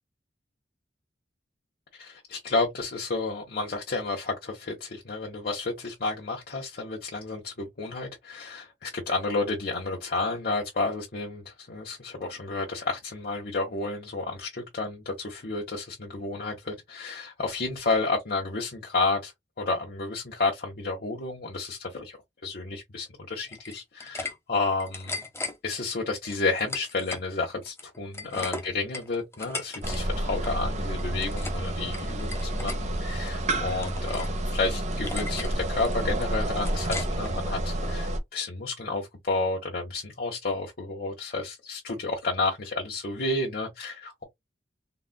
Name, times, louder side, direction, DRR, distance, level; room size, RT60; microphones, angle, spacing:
voice 1, 2.0-19.3 19.6-22.2 22.4-25.2 25.6-44.2, left 3 dB, 55° left, 1.1 m, -31 dB
sound 1, 23.5-24.3 24.6-25.5 26.2-27.3 27.6-30.0 30.2-30.6 31.0-31.6 31.9-32.8 33.2-34.3 34.6-34.7 35.1-35.5 35.8-37.3, left 3 dB, 15° left, 0.8 m, -37 dB
sound 2, 29.8-38.2, right 1 dB, 40° right, 0.7 m, -30 dB
3.9 x 2.4 x 2.3 m
head